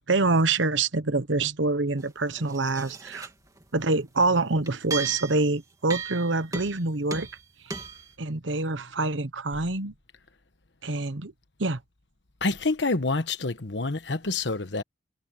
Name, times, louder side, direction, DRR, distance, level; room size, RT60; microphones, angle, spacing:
voice 1, 0.0-3.3 3.7-7.3 7.6-7.7 8.2-9.9 10.8-11.3 11.6-11.8, right 3 dB, 85° right, 1.2 m, -26 dB
sound 1, 2.0-2.1 2.4-3.3 3.6-3.7 4.7-5.5 5.9-6.9 7.1-7.4 7.7-8.1, right 5 dB, 20° right, 3.0 m, -36 dB
voice 2, 12.4-14.8, left 3 dB, 70° left, 1.3 m, -27 dB
head